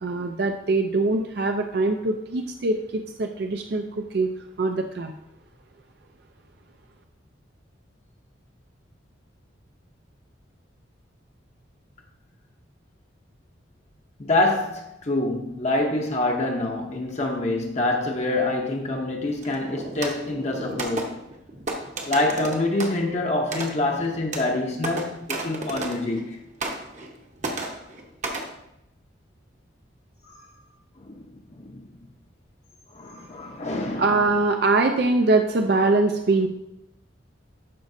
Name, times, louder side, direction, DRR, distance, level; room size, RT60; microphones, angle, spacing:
voice 1, 0.0-4.3 4.6-5.1 34.0-36.5, right 3 dB, 55° right, 0.5 m, -23 dB
voice 2, 14.2-21.1 22.0-26.4 30.3-30.4 31.0-31.3 31.6-31.8 32.9-34.1, left 2 dB, 35° left, 0.7 m, -26 dB
sound 1, 19.4-26.3 26.6-27.1 27.4-28.5, right 2 dB, 40° right, 0.9 m, -33 dB
12.0 x 5.1 x 2.6 m
head